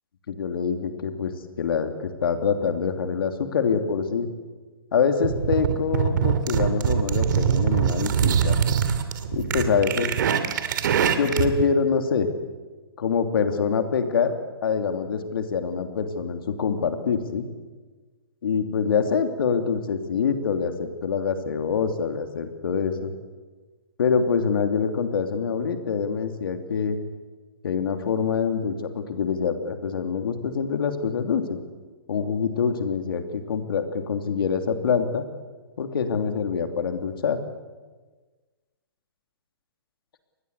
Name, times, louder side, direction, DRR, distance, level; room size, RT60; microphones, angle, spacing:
voice 1, 0.3-1.3 1.6-4.3 4.9-8.6 9.3-10.1 11.2-12.3 13.0-14.3 14.6-17.5 18.4-23.1 24.0-27.0 27.6-31.6 32.1-35.3 35.8-37.4, left 6 dB, 65° left, 6 dB, 3.0 m, -25 dB
sound 1, 5.2-11.6, right 8 dB, 55° right, 2.4 m, -23 dB
26.5 x 20.5 x 8.3 m, 1.3 s
hypercardioid pair, 160°, 13 cm